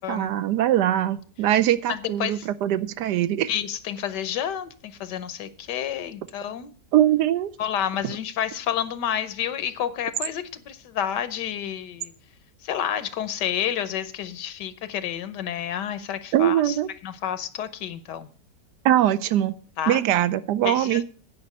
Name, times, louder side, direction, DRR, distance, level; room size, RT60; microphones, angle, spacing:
voice 1, 0.1-3.5 6.9-7.5 16.3-16.9 18.8-19.6 19.9-21.0, right 12 dB, 80° right, 1.3 m, -22 dB
voice 2, 1.9-2.5 3.5-6.7 7.6-12.1 12.6-16.8 17.0-18.3 19.8-20.0 20.6-21.0, left 9 dB, 90° left, 1.5 m, -30 dB
9.5 x 5.4 x 8.2 m
omnidirectional pair, 1.8 m